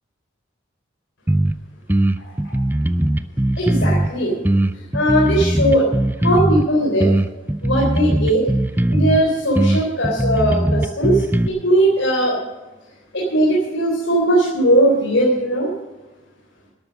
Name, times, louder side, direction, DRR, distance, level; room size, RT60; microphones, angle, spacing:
sound 1, 1.3-1.5 1.9-4.1 4.4-6.7 7.0-9.2 9.5-11.5, right 1 dB, 10° right, 0.4 m, -19 dB
voice 1, 3.6-4.3 4.9-5.9 6.2-7.1 7.6-8.4 8.9-12.4 13.1-15.7, right 1 dB, 80° left, -3 dB, 3.8 m, -18 dB
12.5 x 12.5 x 6.5 m, 1.1 s
head